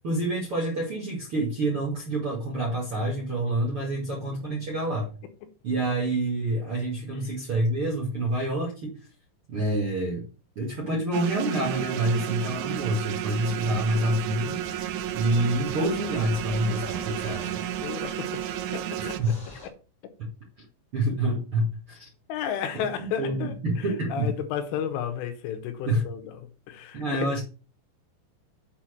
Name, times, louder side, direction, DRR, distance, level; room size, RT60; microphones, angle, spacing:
voice 1, 0.0-5.1 5.6-9.0 9.5-10.2 10.6-14.9 15.1-17.6 19.0-19.4 20.6-20.7 20.9-22.1 23.2-24.4 25.9-26.0 26.9-27.4, right 1 dB, 45° right, 1.8 m, -27 dB
sound 1, 11.1-19.2, right 11 dB, 85° right, 2.8 m, -32 dB
sound 2, 12.4-19.7, equal, 10° left, 1.5 m, -45 dB
voice 2, 17.8-18.4 18.7-19.2 22.3-23.8 24.1-26.3 26.7-27.2, left 9 dB, 80° left, 3.7 m, -32 dB
8.2 x 4.4 x 6.5 m
omnidirectional pair, 5.6 m